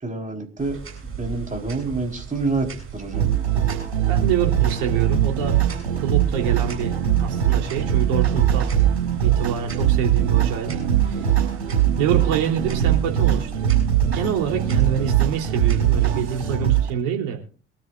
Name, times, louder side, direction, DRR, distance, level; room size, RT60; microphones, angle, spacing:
voice 1, 0.0-3.3, right 3 dB, 25° right, 3 dB, 4.0 m, -28 dB
sound 1, 0.6-16.4, right 6 dB, 45° right, 7.3 m, -36 dB
sound 2, 3.1-16.9, right 10 dB, 85° right, 5.2 m, -21 dB
voice 2, 4.1-5.6 6.0-8.7 9.2-11.3 12.0-13.5 14.1-17.4, right 8 dB, 65° right, 2 dB, 3.3 m, -26 dB
23.5 x 13.0 x 2.5 m, 0.38 s
figure-of-eight pair, 50°, 32 cm